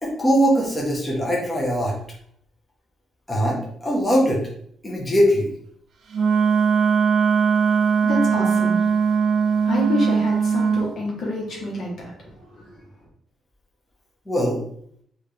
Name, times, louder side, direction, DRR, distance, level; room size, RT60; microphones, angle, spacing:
voice 1, 0.0-2.0 3.3-4.4 4.8-5.5 14.3-14.6, equal, 20° left, -4 dB, 1.1 m, -21 dB
Wind instrument woodwind instrument, 6.1-10.9, right 6 dB, 65° right, 0.5 m, -20 dB
voice 2, 8.0-8.8 9.6-12.1 12.5-12.7, left 1 dB, 60° left, -3 dB, 1.4 m, -27 dB
3.3 x 2.8 x 3.4 m, 0.65 s
cardioid pair, 90°, 0 cm